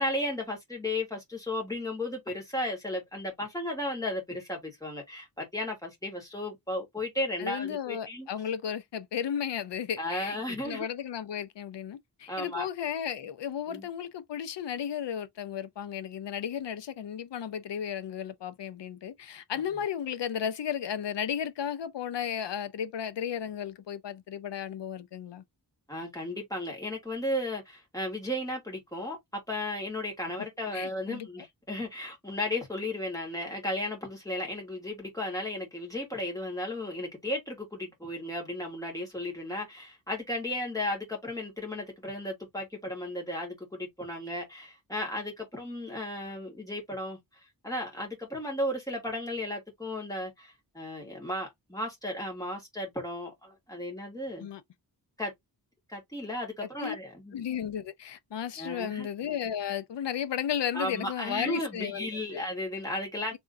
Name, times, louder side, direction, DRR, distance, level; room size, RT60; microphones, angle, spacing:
voice 1, 0.0-8.3 10.0-10.9 12.3-12.7 13.7-13.9 25.9-47.2 47.6-54.5 55.2-55.3 55.9-57.3 58.6-59.1 60.7-63.4, left 1 dB, 10° left, 2.4 m, -34 dB
voice 2, 7.4-25.4 30.7-31.3 54.4-54.6 56.6-57.0 57.3-62.4, left 9 dB, 85° left, 0.7 m, -34 dB
3.6 x 3.5 x 2.6 m
wide cardioid pair, 125°, 42 cm